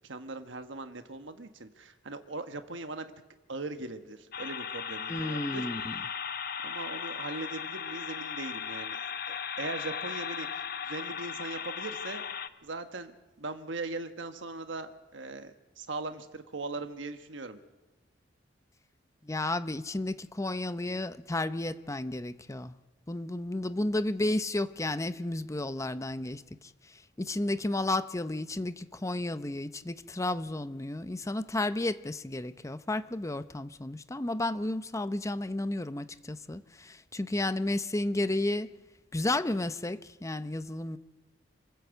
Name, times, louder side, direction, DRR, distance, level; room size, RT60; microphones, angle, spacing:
voice 1, 0.0-3.1 3.5-5.6 6.0-6.1 6.6-12.2 12.6-17.6, right 3 dB, 85° right, 8 dB, 1.3 m, -40 dB
sound 1, 4.3-12.5, left 7 dB, 55° left, 0.8 m, -37 dB
voice 2, 5.1-5.9 19.2-22.8 23.1-26.7 27.2-38.7 39.1-41.0, left 2 dB, 15° left, 13 dB, 0.6 m, -32 dB
27.0 x 14.0 x 8.2 m, 1.2 s
head